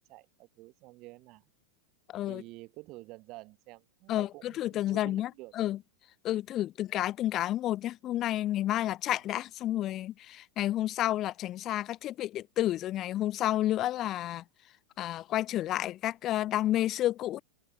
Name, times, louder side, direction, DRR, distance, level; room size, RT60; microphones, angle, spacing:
voice 1, 0.0-1.5 2.3-5.5 6.3-6.4, right 21 dB, 40° right, 1.2 m, -50 dB
voice 2, 4.1-5.3 5.6-5.8 6.2-14.4 15.0-17.4, left 13 dB, 35° left, 0.4 m, -30 dB
figure-of-eight pair, 90°, 0 cm